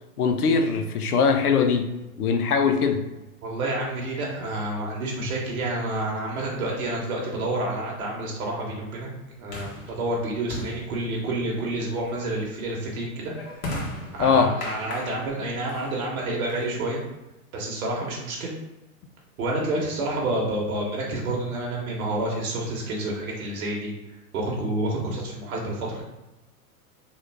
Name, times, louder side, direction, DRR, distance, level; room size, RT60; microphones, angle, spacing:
voice 1, 0.2-1.9 2.2-3.1 14.2-14.5, left 5 dB, 85° left, 6 dB, 0.6 m, -21 dB
voice 2, 3.4-9.1 9.4-13.3 13.6-17.0 17.5-18.5 19.4-23.9 24.3-26.0, right 1 dB, 70° right, -3 dB, 1.0 m, -29 dB
sound 1, 8.0-17.2, left 1 dB, 50° left, 1.4 m, -39 dB
3.0 x 2.3 x 3.4 m, 1.0 s
hypercardioid pair, 115°, 44 cm